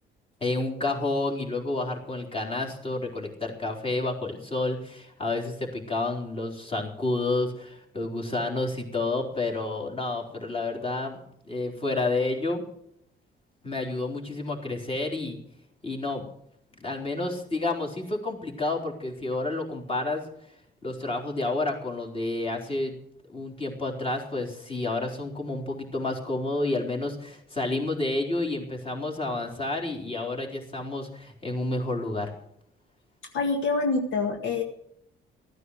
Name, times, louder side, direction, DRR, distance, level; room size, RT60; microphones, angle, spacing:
voice 1, 0.4-11.2 11.5-12.6 13.6-15.4 15.8-16.3 16.8-20.2 20.8-22.9 23.3-32.3, left 2 dB, 30° left, 0 dB, 3.9 m, -30 dB
voice 2, 33.3-34.6, left 3 dB, 75° left, 3 dB, 1.9 m, -26 dB
14.5 x 9.6 x 6.6 m, 0.72 s
cardioid pair, 90°, 20 cm